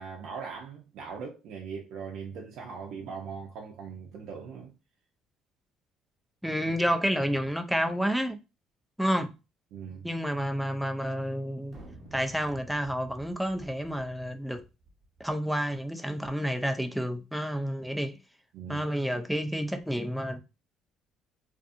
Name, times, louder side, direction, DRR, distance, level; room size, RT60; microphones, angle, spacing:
voice 1, 0.0-4.7 9.7-10.1 18.5-18.9, right 6 dB, 70° right, 0.6 m, -40 dB
voice 2, 6.4-8.4 9.0-9.3 10.0-11.8 12.1-14.6 15.2-18.2 18.7-20.4, equal, ahead, 0.4 m, -30 dB
sound 1, 11.7-15.3, right 2 dB, 30° right, 1.0 m, -51 dB
2.5 x 2.5 x 2.4 m
cardioid pair, 125°, 0 cm